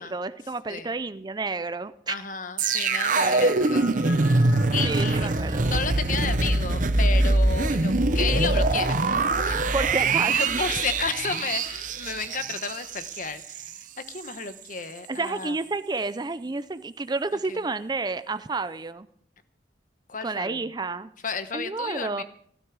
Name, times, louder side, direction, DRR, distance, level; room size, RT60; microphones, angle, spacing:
voice 1, 0.0-2.2 4.8-5.7 9.7-10.6 15.1-19.1 20.2-21.1 21.5-22.2, right 3 dB, 25° right, 13 dB, 0.5 m, -30 dB
voice 2, 2.1-4.4 4.7-5.3 5.6-9.6 10.3-13.7 14.1-15.6 17.5-17.6 20.1-20.7 21.2-22.2, left 5 dB, 45° left, 10 dB, 1.1 m, -32 dB
sound 1, 2.6-7.3, left 3 dB, 70° left, 4.1 m, -42 dB
sound 2, 2.6-13.8 14.1-14.3, right 2 dB, 45° right, 0.8 m, -23 dB
16.0 x 13.0 x 4.8 m, 0.66 s
head